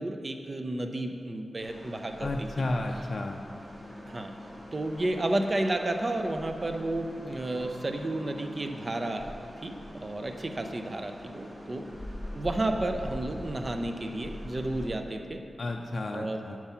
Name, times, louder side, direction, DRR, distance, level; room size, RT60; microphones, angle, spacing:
voice 1, 0.0-2.5 4.1-4.3 4.7-9.3 9.6-11.9 12.3-15.4 16.1-16.4, right 1 dB, 40° right, 5 dB, 0.6 m, -32 dB
sound 1, 1.6-14.9, left 1 dB, 10° right, 1.8 m, -43 dB
voice 2, 2.2-3.4 15.6-16.6, left 2 dB, 55° left, 2 dB, 0.4 m, -32 dB
7.0 x 4.7 x 5.6 m, 2.4 s
wide cardioid pair, 75°, 0 cm